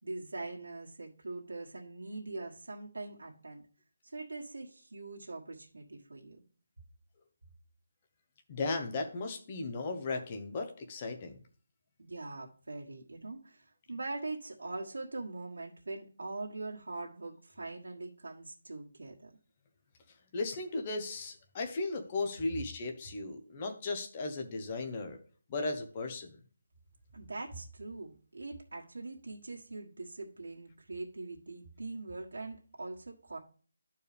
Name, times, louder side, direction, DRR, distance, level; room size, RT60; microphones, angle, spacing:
voice 1, 0.0-3.6 4.1-6.4 12.0-19.3 27.1-33.4, right 2 dB, 85° right, -2 dB, 1.6 m, -42 dB
voice 2, 8.5-11.4 20.3-25.2 25.5-26.4, left 3 dB, 20° left, 4 dB, 0.8 m, -36 dB
12.0 x 4.7 x 3.4 m, 0.43 s
hypercardioid pair, 180°, 0 cm